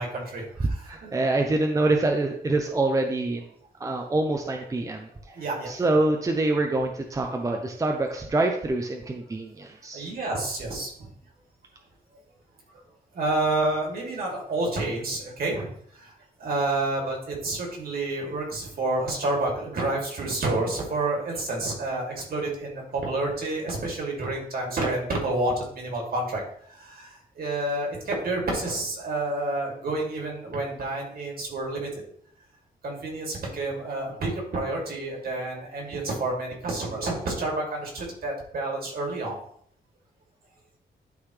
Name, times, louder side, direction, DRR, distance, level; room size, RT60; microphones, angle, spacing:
voice 1, 0.0-1.1 5.3-5.7 9.9-11.1 13.1-16.1 16.4-31.9 32.8-39.4, right 2 dB, 60° right, -1 dB, 2.5 m, -29 dB
voice 2, 0.9-3.5 3.8-5.1 5.7-10.1, right 2 dB, 20° right, 3 dB, 0.6 m, -25 dB
11.5 x 4.0 x 3.2 m, 0.64 s
wide cardioid pair, 165°, 17 cm